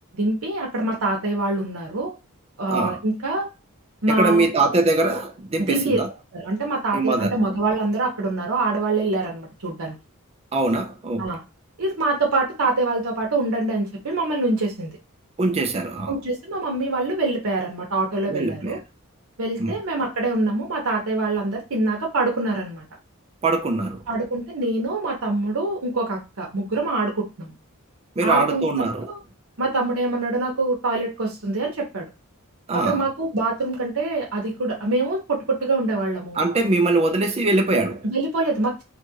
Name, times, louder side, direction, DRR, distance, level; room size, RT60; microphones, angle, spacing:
voice 1, 0.1-2.1 2.6-3.4 4.0-4.5 5.6-6.0 6.3-9.9 11.2-11.4 11.8-14.9 16.1-18.8 19.4-22.8 24.1-27.5 28.2-29.2 29.6-32.1 32.7-36.4 38.0-38.8, right 2 dB, 75° right, 0.9 m, -25 dB
voice 2, 2.7-3.0 4.1-6.1 6.9-7.4 10.5-11.3 15.4-16.1 18.3-18.8 19.6-19.8 23.4-24.0 28.2-29.1 32.7-33.0 36.4-38.0, right 2 dB, 30° right, 0.4 m, -22 dB
2.7 x 2.5 x 2.8 m
head